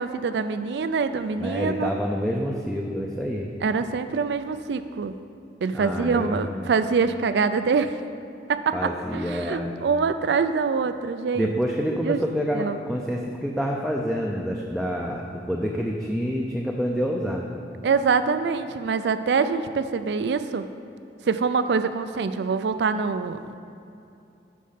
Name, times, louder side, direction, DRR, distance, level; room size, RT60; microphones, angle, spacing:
voice 1, 0.0-1.9 3.6-5.1 5.6-7.9 8.5-11.6 12.0-12.2 12.5-12.8 17.8-20.7 21.3-23.6, right 5 dB, 70° right, 11 dB, 0.4 m, -25 dB
voice 2, 1.4-3.5 5.7-6.7 8.7-9.7 11.3-17.4, equal, ahead, -1 dB, 0.5 m, -27 dB
8.4 x 5.3 x 5.7 m, 2.7 s
head